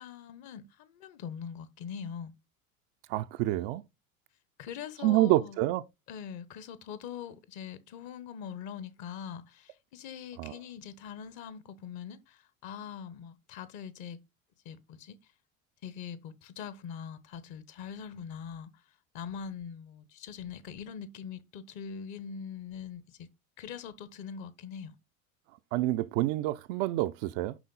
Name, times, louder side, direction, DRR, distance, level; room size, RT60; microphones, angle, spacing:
voice 1, 0.0-2.3 4.6-5.6 6.1-14.2 14.6-15.2 15.8-18.8 19.1-23.3 23.6-24.9, left 7 dB, 45° left, 1.1 m, -42 dB
voice 2, 3.1-3.8 5.0-5.8 10.4-10.6 25.7-27.6, right 16 dB, 40° right, 0.5 m, -27 dB
11.0 x 3.8 x 3.9 m
figure-of-eight pair, 75°, 42 cm